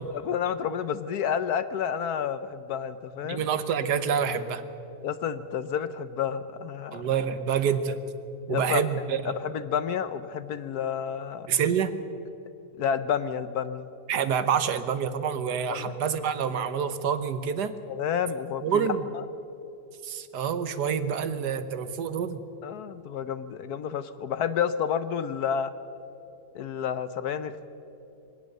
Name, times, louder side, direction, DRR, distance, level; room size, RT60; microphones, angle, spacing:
voice 1, 0.1-3.4 5.0-7.0 8.5-8.8 9.2-11.5 12.8-13.9 15.7-16.0 17.9-18.8 22.6-25.7 26.5-27.6, left 8 dB, 65° left, 12 dB, 1.1 m, -30 dB
voice 2, 3.3-4.6 6.9-8.0 8.5-9.2 11.5-11.9 14.1-17.7 18.6-19.1 20.0-22.4, right 7 dB, 70° right, 11 dB, 1.5 m, -27 dB
22.0 x 17.5 x 6.6 m, 2.9 s
omnidirectional pair, 1.9 m